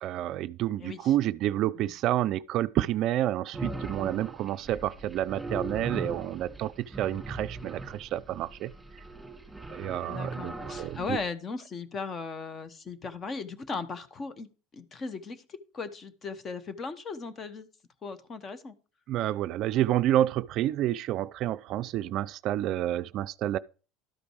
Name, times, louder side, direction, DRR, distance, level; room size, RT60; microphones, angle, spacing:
voice 1, 0.0-8.7 9.7-11.2 19.1-23.6, right 13 dB, 55° right, 0.4 m, -29 dB
sound 1, 3.5-11.3, right 2 dB, 10° right, 2.5 m, -39 dB
voice 2, 10.0-14.5 14.7-15.4 15.7-17.7 18.0-18.7, left 4 dB, 35° left, 1.2 m, -37 dB
12.5 x 5.1 x 4.7 m
hypercardioid pair, 85°, 0 cm